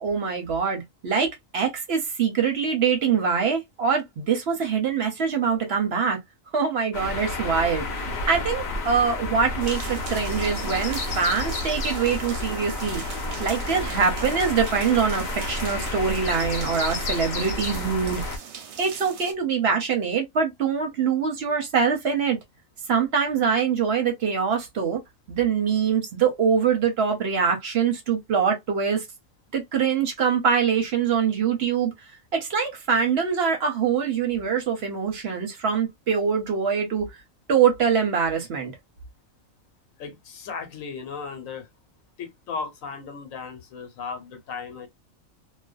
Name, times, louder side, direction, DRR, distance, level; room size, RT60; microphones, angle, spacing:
voice 1, 0.0-6.2 6.5-18.2 18.8-22.4 22.9-25.0 25.3-29.0 29.5-31.9 32.3-37.1 37.5-38.7, right 6 dB, 60° right, 0.8 m, -24 dB
sound 1, 6.9-18.4, left 2 dB, 60° left, 0.9 m, -30 dB
sound 2, 9.6-19.3, right 7 dB, 90° right, 1.1 m, -40 dB
voice 2, 40.0-41.7 42.2-44.9, left 5 dB, 80° left, 1.1 m, -36 dB
2.4 x 2.1 x 2.3 m
omnidirectional pair, 1.4 m